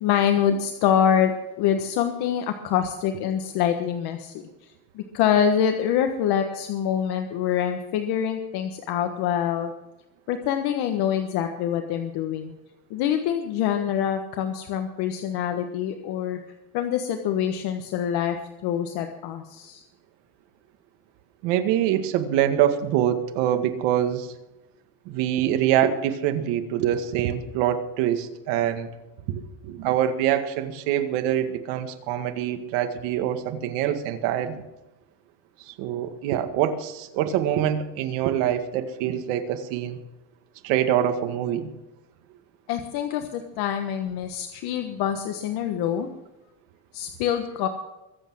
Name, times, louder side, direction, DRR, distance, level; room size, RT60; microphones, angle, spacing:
voice 1, 0.0-4.5 4.9-9.7 10.3-12.6 12.9-16.4 16.7-18.4 18.6-19.8 42.7-46.1 46.9-47.7, left 9 dB, 55° left, 6 dB, 1.4 m, -25 dB
voice 2, 21.4-24.3 25.1-28.9 29.3-34.6 35.7-40.0 40.6-41.7, right 10 dB, 70° right, 7 dB, 2.0 m, -25 dB
22.5 x 8.3 x 6.3 m, 1.0 s
cardioid pair, 160°, 44 cm